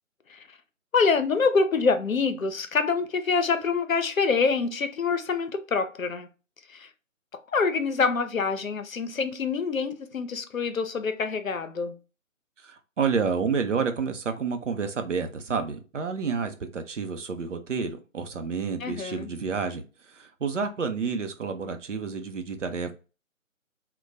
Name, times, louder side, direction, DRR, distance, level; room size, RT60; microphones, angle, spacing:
voice 1, 0.9-6.3 6.7-6.9 7.5-12.0 18.8-19.3, left 4 dB, 80° left, 0.6 m, -26 dB
voice 2, 12.6-22.9, right 5 dB, 65° right, 0.6 m, -29 dB
2.2 x 2.2 x 3.8 m
figure-of-eight pair, 150°, 40 cm